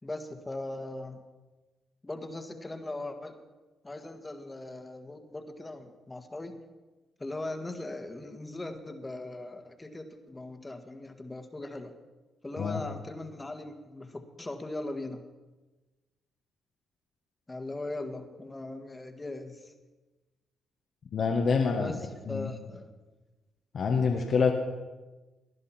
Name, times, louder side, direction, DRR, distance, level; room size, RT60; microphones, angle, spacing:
voice 1, 0.0-1.2 2.0-3.4 3.8-6.6 7.2-11.9 12.4-15.2 17.5-19.7 21.8-23.0, left 2 dB, 20° left, 6 dB, 1.6 m, -39 dB
voice 2, 21.1-21.9 22.3-22.5 23.7-24.5, left 5 dB, 60° left, 1 dB, 1.3 m, -26 dB
19.0 x 11.0 x 4.4 m, 1.2 s
supercardioid pair, 60°, 0 cm